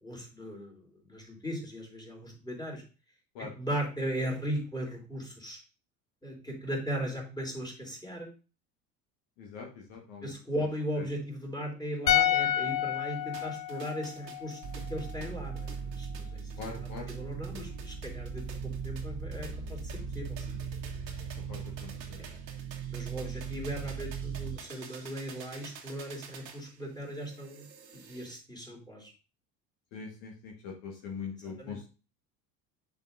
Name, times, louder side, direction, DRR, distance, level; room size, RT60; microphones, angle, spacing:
voice 1, 0.0-2.8 3.6-5.6 6.2-8.3 10.2-14.6 14.9-16.4 16.8-18.4 18.8-19.8 20.1-20.6 22.2-22.4 22.9-27.7 27.9-29.1 31.4-31.8, equal, 10° left, 0 dB, 3.4 m, -37 dB
voice 2, 9.4-10.3 16.6-17.1 21.5-22.3 29.9-31.8, left 5 dB, 55° left, 0 dB, 1.6 m, -42 dB
sound 1, 12.1-15.3 15.5-15.7, left 11 dB, 80° left, 0.8 m, -30 dB
sound 2, 13.3-28.3, right 6 dB, 80° right, 1.4 m, -50 dB
sound 3, 14.6-24.6, right 6 dB, 40° right, 0.9 m, -39 dB
10.0 x 4.9 x 2.7 m, 0.34 s
figure-of-eight pair, 70°, 49 cm